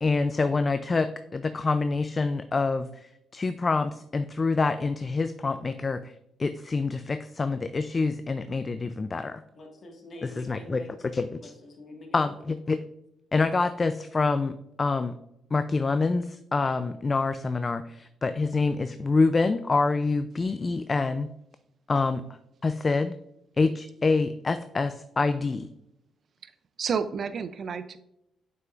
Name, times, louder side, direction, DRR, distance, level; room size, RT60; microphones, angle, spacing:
voice 1, 0.0-6.1 6.4-9.4 10.4-10.8 11.1-11.5 12.1-12.8 13.3-15.1 15.5-21.3 21.9-22.2 22.6-23.1 23.6-25.7, left 3 dB, 30° left, 11 dB, 0.3 m, -26 dB
voice 2, 9.5-10.9 11.4-12.3, left 1 dB, 45° left, 1 dB, 1.5 m, -46 dB
voice 3, 26.8-28.0, right 6 dB, 55° right, 13 dB, 0.3 m, -30 dB
7.6 x 5.6 x 2.4 m, 0.82 s
cardioid pair, 90°, 0 cm